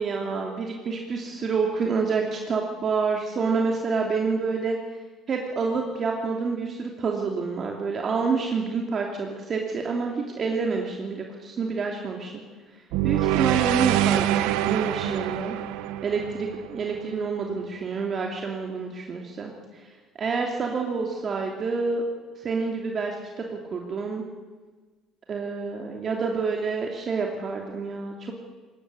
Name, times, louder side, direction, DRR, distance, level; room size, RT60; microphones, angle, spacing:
voice 1, 0.0-4.8 5.3-12.4 13.0-15.6 16.0-19.5 20.2-22.0 22.4-24.2 25.3-28.3, right 4 dB, 40° right, 1 dB, 3.0 m, -28 dB
sound 1, 12.9-17.2, right 13 dB, 85° right, 1.2 m, -25 dB
21.0 x 17.5 x 10.0 m, 1.3 s
cardioid pair, 115°, 0 cm